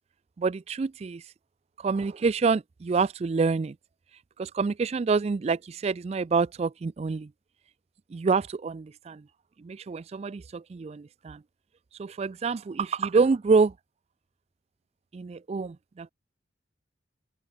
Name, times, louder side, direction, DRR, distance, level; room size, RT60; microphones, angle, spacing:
voice 1, 0.4-1.3 1.8-3.8 4.4-7.3 8.1-9.2 9.6-11.4 12.0-13.7 15.1-16.1, right 4 dB, 35° right, 0.3 m, -27 dB
head